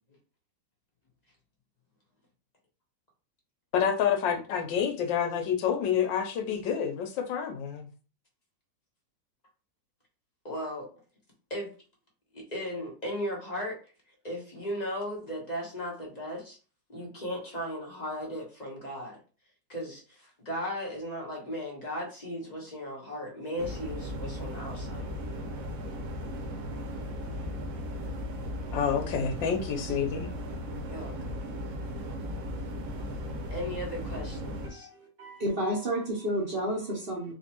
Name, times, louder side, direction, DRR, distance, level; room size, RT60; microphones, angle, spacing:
voice 1, 3.7-7.9 28.7-30.3, left 8 dB, 80° left, 6 dB, 1.4 m, -28 dB
voice 2, 10.4-10.9 11.5-11.7 12.3-13.9 14.2-16.6 16.9-19.2 19.7-25.1 30.9-31.4 33.5-34.9, equal, 30° left, -2 dB, 0.8 m, -36 dB
sound 1, 23.6-34.7, equal, 85° right, 1.5 m, -36 dB
voice 3, 34.6-37.3, right 1 dB, 45° right, -1 dB, 0.8 m, -31 dB
4.2 x 2.6 x 2.9 m, 0.36 s
omnidirectional pair, 2.0 m